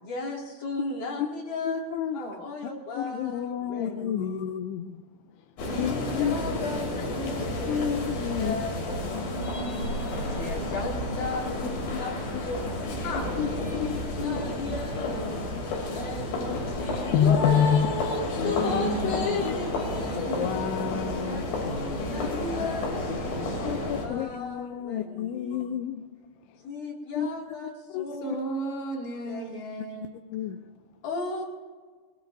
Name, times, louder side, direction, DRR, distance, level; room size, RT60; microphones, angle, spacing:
voice 1, 0.0-1.8 2.4-4.4 5.6-8.8 10.1-12.8 13.1-15.4 15.9-20.2 21.2-22.9 23.5-25.6 26.6-28.5 29.2-29.5 31.0-31.4, left 3 dB, 50° left, -2 dB, 3.3 m, -35 dB
voice 2, 1.6-2.2 2.6-5.0 5.7-6.6 7.2-7.3 7.7-8.6 9.0-9.3 11.6-12.0 12.3-12.4 13.4-13.5 13.8-14.4 15.5-15.6 16.5-16.6 16.9-17.9 18.4-18.6 19.4-19.5 20.4-21.7 23.1-23.2 23.6-26.1 26.5-26.6 27.1-27.3 27.6-28.1 30.3-30.6, left 9 dB, 85° left, 7 dB, 2.3 m, -29 dB
sound 1, 5.6-24.1, left 1 dB, 70° left, 5.0 m, -31 dB
voice 3, 13.0-13.4 22.1-22.3 28.2-30.1, right 1 dB, 20° left, -2 dB, 2.1 m, -34 dB
20.5 x 20.5 x 2.6 m, 1.5 s
omnidirectional pair, 5.3 m